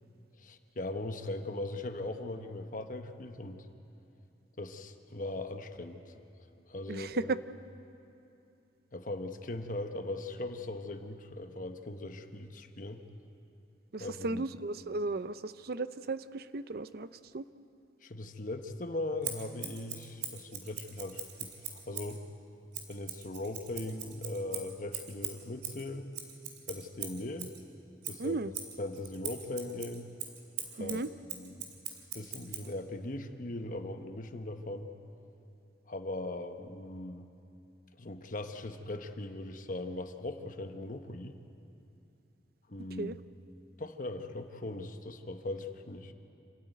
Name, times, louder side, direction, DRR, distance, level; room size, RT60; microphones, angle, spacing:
voice 1, 0.4-3.7 4.6-6.1 6.7-7.3 8.9-13.0 14.0-14.4 18.0-22.2 22.9-26.2 26.7-27.5 28.1-30.1 30.7-31.0 31.2-31.6 32.1-34.9 35.9-37.3 38.0-41.4 42.7-43.2 43.8-46.1, left 2 dB, 50° left, 6 dB, 1.1 m, -39 dB
voice 2, 6.9-7.4 13.9-17.1 17.3-17.4 28.2-28.5 30.8-31.1 43.0-43.2, right 3 dB, 55° right, 14 dB, 0.6 m, -35 dB
Scissors, 19.2-22.2 22.7-27.6 28.0-32.7, right 8 dB, 75° right, 3.0 m, -41 dB
27.5 x 13.5 x 9.3 m, 2.7 s
head